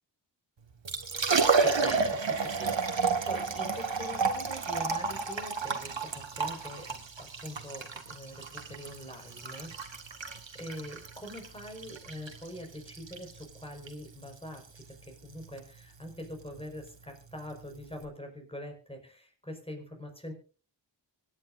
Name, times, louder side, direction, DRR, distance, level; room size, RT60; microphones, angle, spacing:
Liquid, 0.7-18.0, right 4 dB, 70° right, 1.9 m, -32 dB
voice 1, 1.6-10.0 10.5-14.7 15.0-20.3, equal, 10° left, 3 dB, 4.9 m, -44 dB
25.0 x 10.0 x 2.6 m, 0.38 s
wide cardioid pair, 60°, 46 cm